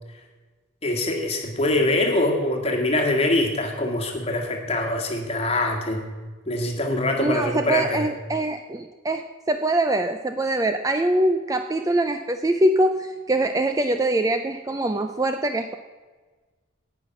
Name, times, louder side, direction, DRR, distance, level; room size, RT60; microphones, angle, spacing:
voice 1, 0.8-6.0 6.4-8.1, left 1 dB, 30° left, 2 dB, 1.7 m, -23 dB
voice 2, 7.2-15.7, right 1 dB, 15° right, 7 dB, 0.4 m, -23 dB
17.5 x 5.9 x 5.9 m, 1.3 s
head